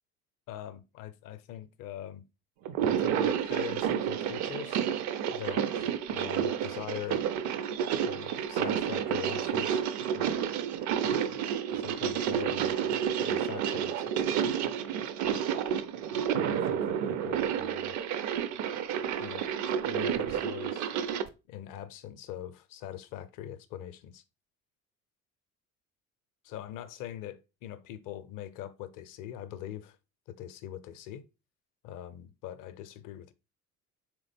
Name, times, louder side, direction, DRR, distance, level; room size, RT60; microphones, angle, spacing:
voice 1, 0.5-2.2 2.9-4.8 5.3-7.2 8.0-9.8 10.1-10.4 11.3-12.7 13.2-14.2 16.4-18.0 19.2-19.5 19.8-20.9 21.5-24.2 26.4-30.0 30.3-31.2 31.8-33.3, left 11 dB, 50° left, 0.6 m, -42 dB
sound 1, 2.6-21.3, right 8 dB, 45° right, 0.4 m, -30 dB
3.7 x 3.0 x 3.4 m
figure-of-eight pair, 55°, 44 cm